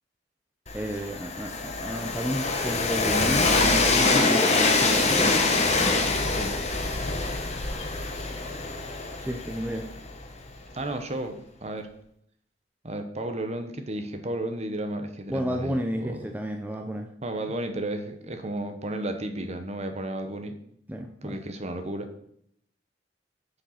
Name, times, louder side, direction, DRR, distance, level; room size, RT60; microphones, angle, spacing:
Train, 0.7-10.5, left 3 dB, 35° left, 1.2 m, -25 dB
voice 1, 0.7-5.3 9.2-9.9 15.3-17.1 20.9-21.4, equal, 10° right, 3 dB, 0.6 m, -31 dB
voice 2, 10.7-11.9 12.8-16.3 17.2-20.5 21.2-22.1, right 1 dB, 35° right, 6 dB, 1.1 m, -33 dB
7.5 x 6.6 x 5.8 m, 0.70 s
head